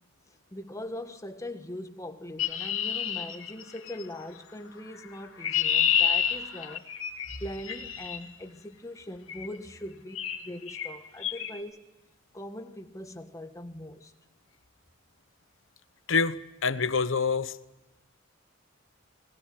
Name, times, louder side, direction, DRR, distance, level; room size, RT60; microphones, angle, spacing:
voice 1, 0.3-6.9 7.4-11.8 12.3-14.1, left 1 dB, 15° left, 1.6 m, -41 dB
Chirp tweet, 2.4-4.0 5.0-8.2 9.3-9.6 10.1-10.4 10.7-10.9 11.2-11.5, left 8 dB, 85° left, 2.5 m, -29 dB
voice 2, 16.1-17.6, left 5 dB, 70° left, 1.0 m, -26 dB
20.5 x 20.0 x 9.4 m
head